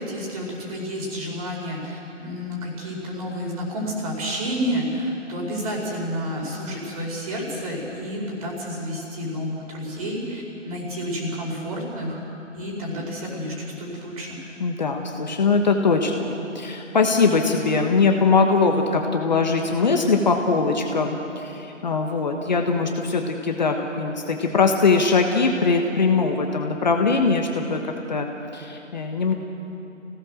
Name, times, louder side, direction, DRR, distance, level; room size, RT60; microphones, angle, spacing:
voice 1, 0.0-12.2 12.5-14.4, equal, 30° right, -1 dB, 4.9 m, -30 dB
voice 2, 14.6-27.8 28.1-28.3 28.5-29.3, left 4 dB, 35° left, 3 dB, 1.3 m, -21 dB
25.5 x 17.0 x 6.5 m, 2.9 s
figure-of-eight pair, 155°, 38 cm